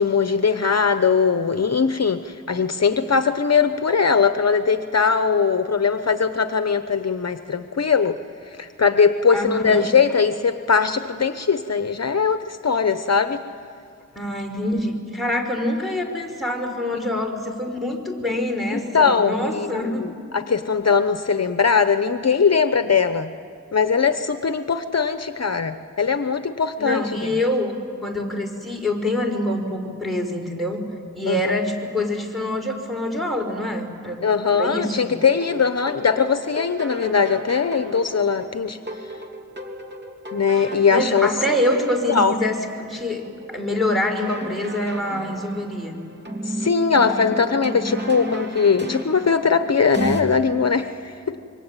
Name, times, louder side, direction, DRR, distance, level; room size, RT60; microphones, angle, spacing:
voice 1, 0.0-8.2 8.6-13.4 18.7-23.3 23.7-27.3 31.3-31.5 34.2-38.8 40.3-41.3 42.1-42.4 46.4-51.4, left 5 dB, 50° left, 9 dB, 0.9 m, -20 dB
voice 2, 9.3-9.9 14.2-20.1 26.8-27.8 28.0-30.8 31.1-34.2 34.5-35.1 40.6-46.0, left 1 dB, ahead, 0 dB, 5.2 m, -25 dB
sound 1, 35.2-50.2, equal, 35° right, 3.1 m, -34 dB
26.5 x 24.0 x 9.1 m, 2.4 s
wide cardioid pair, 65°, 32 cm